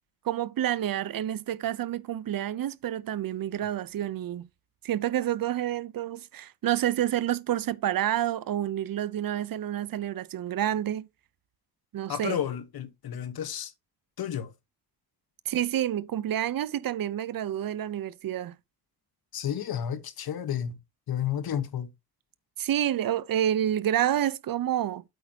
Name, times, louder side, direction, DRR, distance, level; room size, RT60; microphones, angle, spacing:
voice 1, 0.2-4.5 4.8-11.1 11.9-12.4 15.5-18.6 22.6-25.0, right 11 dB, 60° right, 0.7 m, -29 dB
voice 2, 12.1-13.7 14.2-14.5 19.3-20.8 21.1-21.9, left 9 dB, 70° left, 1.3 m, -31 dB
8.4 x 8.2 x 2.8 m
wide cardioid pair, 175°, 38 cm